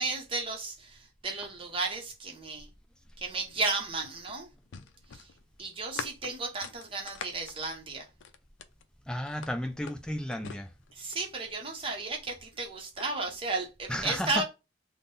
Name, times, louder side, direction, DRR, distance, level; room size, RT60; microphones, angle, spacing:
voice 1, 0.0-2.7 3.2-4.5 5.1-5.3 5.6-8.1 10.9-14.4, right 3 dB, 25° right, 0.7 m, -34 dB
sound 1, 3.6-8.8 9.3-11.4 12.3-13.1, left 6 dB, 75° left, 0.4 m, -44 dB
voice 2, 9.1-10.7 13.9-14.4, equal, 5° left, 0.3 m, -33 dB
3.6 x 2.1 x 3.8 m
head